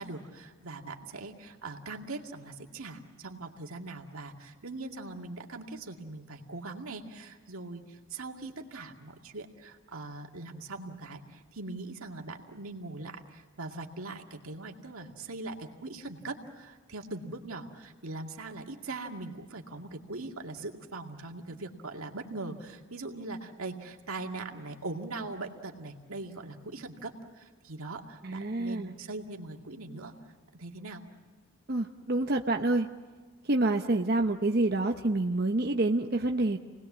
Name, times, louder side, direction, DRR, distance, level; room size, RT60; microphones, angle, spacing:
voice 1, 0.0-30.1 30.5-31.0, right 2 dB, 90° right, 2 dB, 2.3 m, -41 dB
voice 2, 28.2-28.9 31.7-32.9 33.5-36.6, right 2 dB, 45° right, 3 dB, 0.9 m, -27 dB
29.0 x 20.0 x 7.4 m, 1.4 s
head